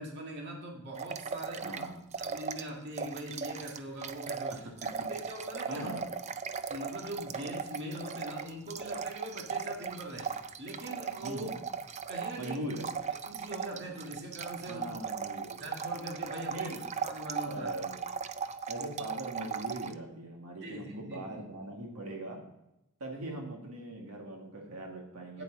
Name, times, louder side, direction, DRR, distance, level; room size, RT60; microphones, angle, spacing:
voice 1, 0.0-1.8 2.2-4.7 5.0-5.9 6.7-11.5 12.1-12.6 13.2-15.0 15.6-17.7 20.6-21.4 25.3-25.4, right 1 dB, 50° right, 0 dB, 1.7 m, -42 dB
sound 1, 1.0-2.7 3.0-19.9, right 6 dB, 30° right, 0.4 m, -38 dB
voice 2, 1.6-2.0 5.7-6.1 11.2-11.6 12.4-12.9 14.7-15.7 16.5-16.8 17.4-18.0 18.7-22.4 23.0-25.4, right 1 dB, 80° right, 0 dB, 1.7 m, -40 dB
8.9 x 8.5 x 3.7 m, 0.89 s
head